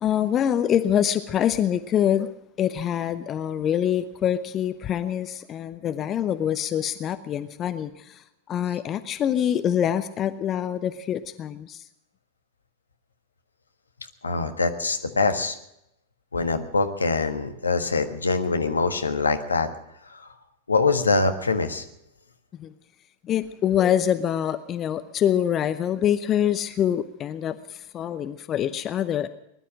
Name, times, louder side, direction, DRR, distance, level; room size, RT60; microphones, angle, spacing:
voice 1, 0.0-2.3 2.6-11.8 22.6-22.7 23.2-29.3, left 10 dB, 30° left, 12 dB, 0.7 m, -25 dB
voice 2, 14.2-15.5 16.3-19.7 20.1-20.3 20.7-21.8, left 3 dB, 75° left, 7 dB, 1.4 m, -24 dB
20.5 x 11.5 x 6.2 m, 0.80 s
figure-of-eight pair, 90°, 0 cm